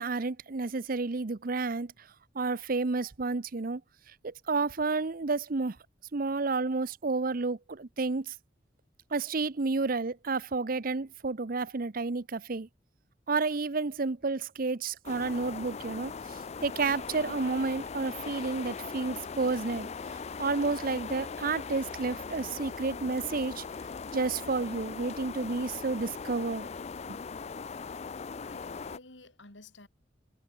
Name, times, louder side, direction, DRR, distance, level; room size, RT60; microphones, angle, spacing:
voice 1, 0.0-1.9 2.3-3.8 4.2-5.8 6.1-8.3 9.1-12.7 13.3-19.9 20.4-23.6 24.1-26.7 27.1-27.2, right 3 dB, 50° right, 0.7 m, -31 dB
sound 1, 15.0-29.0, left 5 dB, 35° left, 0.4 m, -40 dB
voice 2, 28.0-29.9, left 2 dB, 80° left, 4.6 m, -52 dB
head